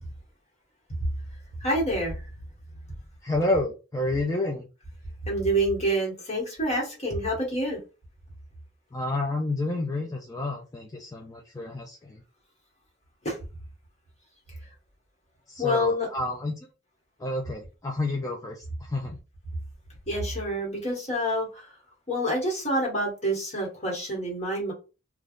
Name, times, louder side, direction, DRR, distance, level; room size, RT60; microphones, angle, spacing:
voice 1, 1.6-2.2 5.3-7.8 13.2-13.4 15.6-16.1 20.1-21.7 22.1-24.7, equal, 35° left, 1.3 m, -27 dB
voice 2, 3.2-4.7 8.9-12.2 15.5-16.5 17.2-19.2, left 2 dB, 20° left, 0.4 m, -30 dB
3.3 x 2.3 x 2.5 m
head